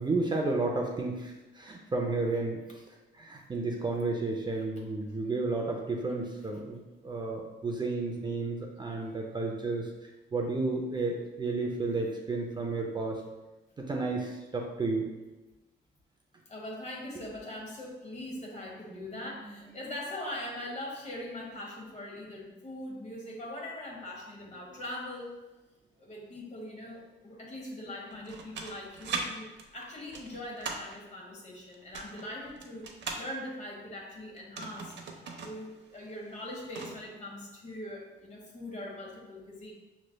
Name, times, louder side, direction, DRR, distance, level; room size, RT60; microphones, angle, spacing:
voice 1, 0.0-2.6 3.1-13.2 13.8-15.1 18.9-19.1, right 3 dB, 25° right, 0 dB, 0.5 m, -32 dB
voice 2, 16.5-25.4 26.0-32.9 33.1-39.7, left 1 dB, 35° left, -2 dB, 1.3 m, -41 dB
sound 1, 28.1-29.2 29.6-30.9 31.7-33.3 34.4-35.6 35.9-36.0 36.3-37.0, right 4 dB, 65° right, 0.7 m, -39 dB
5.8 x 3.1 x 2.2 m, 1.1 s
cardioid pair, 90°, 20 cm